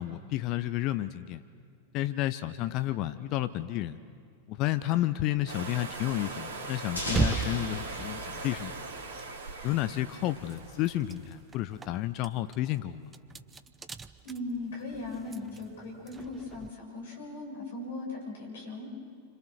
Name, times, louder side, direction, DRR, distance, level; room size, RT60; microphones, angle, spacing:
voice 1, 0.0-1.4 1.9-4.0 4.5-8.7 9.6-13.1, left 14 dB, 40° left, 13 dB, 0.7 m, -31 dB
sound 1, 5.5-11.2, right 3 dB, 55° right, 3.0 m, -41 dB
sound 2, 7.0-9.7, left 1 dB, 80° left, 4.2 m, -38 dB
sound 3, 7.0-10.0 10.3-16.7, right 5 dB, 15° right, 0.8 m, -38 dB
voice 2, 14.2-18.9, left 2 dB, 60° left, 0 dB, 7.6 m, -38 dB
29.0 x 26.0 x 6.6 m, 2.3 s
figure-of-eight pair, 90°, 0 cm